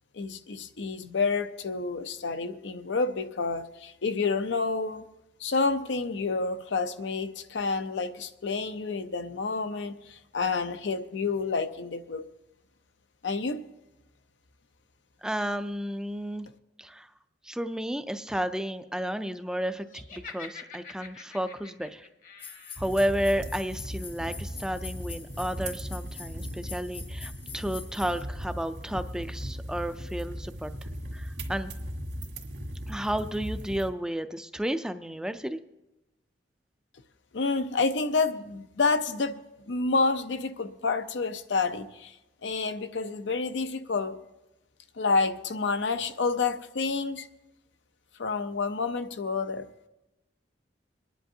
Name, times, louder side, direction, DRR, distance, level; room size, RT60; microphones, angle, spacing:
voice 1, 0.1-5.1 5.4-12.2 13.2-13.6 37.3-39.4 39.7-42.2 42.4-44.2 45.0-47.3 48.2-49.7, left 4 dB, 85° left, 9 dB, 0.6 m, -29 dB
voice 2, 15.2-16.5 16.8-17.1 17.4-22.1 22.8-30.7 31.1-31.7 32.9-35.6, equal, 5° right, 10 dB, 0.3 m, -32 dB
Laughter, 19.9-22.9, left 5 dB, 45° left, 1.0 m, -46 dB
sound 1, 22.4-28.2, left 6 dB, 30° left, 0.6 m, -45 dB
sound 2, 22.8-33.9, equal, 75° right, 1.9 m, -38 dB
25.0 x 10.5 x 2.7 m, 0.98 s
head